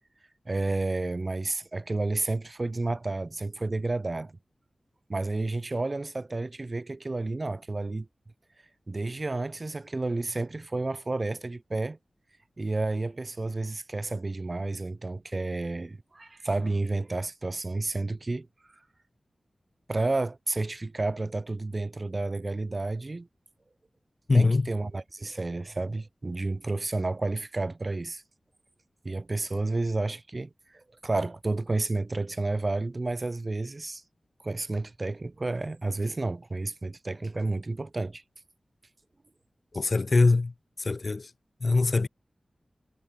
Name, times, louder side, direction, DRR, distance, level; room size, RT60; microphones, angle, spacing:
voice 1, 0.5-4.4 5.1-8.1 8.9-12.0 12.6-18.5 19.9-23.3 24.3-28.2 29.0-34.0 34.4-38.2, right 2 dB, 40° right, 7.2 m, -31 dB
voice 2, 24.3-24.7 39.7-40.5 40.8-41.3 41.6-42.1, left 3 dB, 50° left, 2.5 m, -22 dB
wide cardioid pair, 75°, 0 cm